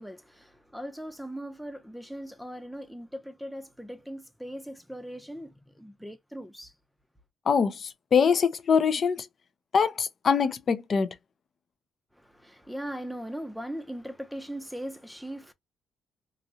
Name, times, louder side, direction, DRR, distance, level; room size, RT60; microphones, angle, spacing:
voice 1, 0.0-6.7 12.1-15.5, equal, ahead, 0.7 m, -39 dB
voice 2, 7.5-9.3 9.7-11.1, left 6 dB, 50° left, 0.6 m, -24 dB
3.1 x 2.5 x 2.6 m
cardioid pair, 90°, 0 cm